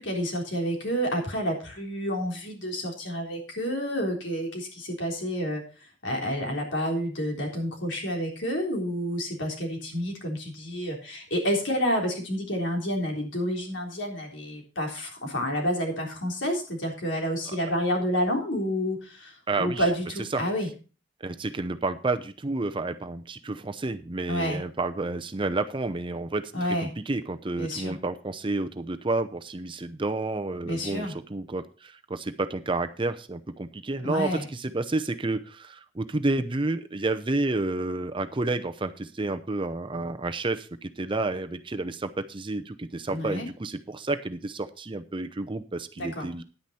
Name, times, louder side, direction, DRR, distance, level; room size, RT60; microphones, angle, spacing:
voice 1, 0.0-20.7 24.3-24.6 26.5-26.9 27.6-28.0 30.6-31.1 34.0-34.5 43.1-43.5 46.0-46.3, equal, 70° left, 1 dB, 3.6 m, -29 dB
voice 2, 19.5-19.8 20.3-20.4 21.2-26.5 26.8-46.4, right 2 dB, 25° right, 9 dB, 0.7 m, -30 dB
10.0 x 9.6 x 4.2 m, 0.35 s
head